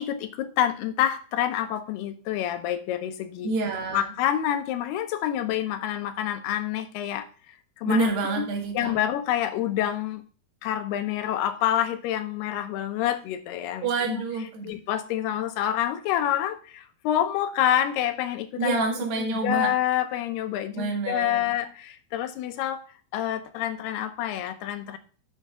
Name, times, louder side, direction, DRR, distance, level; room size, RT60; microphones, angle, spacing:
voice 1, 0.0-3.5 3.9-7.3 7.8-8.5 8.7-10.2 10.6-14.2 14.6-18.8 19.2-22.8 23.1-25.0, left 11 dB, 80° left, 10 dB, 2.7 m, -27 dB
voice 2, 3.4-4.1 7.9-8.9 13.8-14.7 18.6-19.7 20.7-21.4, right 3 dB, 75° right, 2 dB, 4.1 m, -27 dB
10.5 x 6.7 x 3.6 m, 0.40 s
omnidirectional pair, 4.8 m